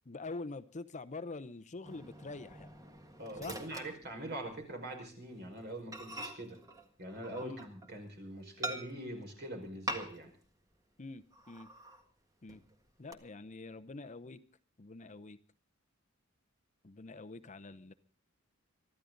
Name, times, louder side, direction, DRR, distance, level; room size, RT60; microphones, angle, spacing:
voice 1, 0.1-2.7 3.4-3.6 7.4-7.6 11.0-11.7 12.4-12.6 13.0-14.4 14.8-15.4 16.8-17.9, left 3 dB, 35° left, 12 dB, 0.8 m, -45 dB
Microwave oven, 1.8-4.7 5.0-5.3 5.6-5.7 5.9-8.0 8.6-9.2 9.9-10.5 10.7-10.8 11.3-12.1 12.5-13.1, right 1 dB, 15° right, 1.7 m, -44 dB
voice 2, 3.2-6.6 7.0-10.3, right 1 dB, 55° right, 4 dB, 5.3 m, -43 dB
24.5 x 14.0 x 3.9 m, 0.38 s
head